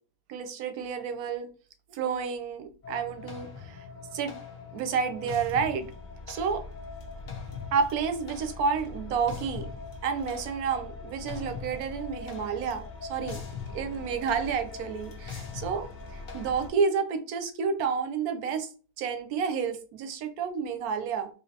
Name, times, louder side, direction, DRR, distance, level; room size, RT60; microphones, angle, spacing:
voice 1, 0.3-1.5 1.9-3.8 4.1-4.4 4.7-5.9 6.3-6.6 7.7-9.7 10.0-12.8 13.1-13.4 13.7-18.7 19.0-21.3, right 6 dB, 75° right, 7 dB, 1.0 m, -30 dB
sound 1, 2.8-16.7, left 4 dB, 70° left, 0.4 m, -41 dB
3.2 x 3.0 x 2.7 m, 0.38 s
omnidirectional pair, 1.7 m